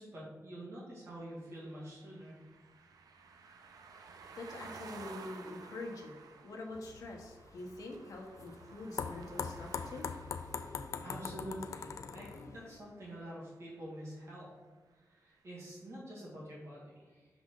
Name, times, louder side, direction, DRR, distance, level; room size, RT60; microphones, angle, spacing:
voice 1, 0.0-2.4 11.0-14.5 15.0-17.3, right 1 dB, 45° right, -6 dB, 1.9 m, -47 dB
sound 1, 1.1-13.1, right 5 dB, 90° right, 0.5 m, -54 dB
voice 2, 4.4-10.1, left 2 dB, 75° left, 0 dB, 1.1 m, -45 dB
sound 2, 6.8-12.8, left 6 dB, 55° left, 0.4 m, -42 dB
6.3 x 5.0 x 3.8 m, 1.4 s
wide cardioid pair, 180°, 6 cm